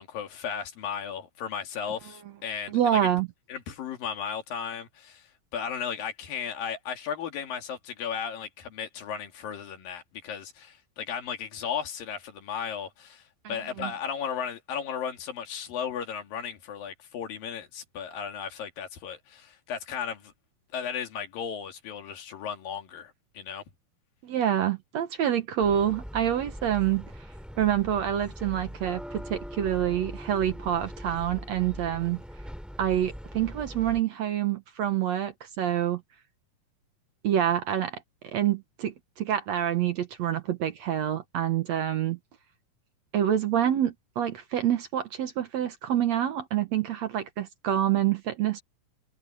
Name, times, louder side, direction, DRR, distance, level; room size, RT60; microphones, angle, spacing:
voice 1, 0.0-3.1 3.5-20.3 20.7-23.6, left 7 dB, 80° left, 4.0 m, -35 dB
voice 2, 2.7-3.3 13.4-13.9 24.2-27.1 27.6-32.2 32.8-36.0 37.2-42.2 43.1-48.6, right 10 dB, 65° right, 2.0 m, -27 dB
sound 1, 25.6-34.0, equal, ahead, 2.6 m, -41 dB
omnidirectional pair, 4.0 m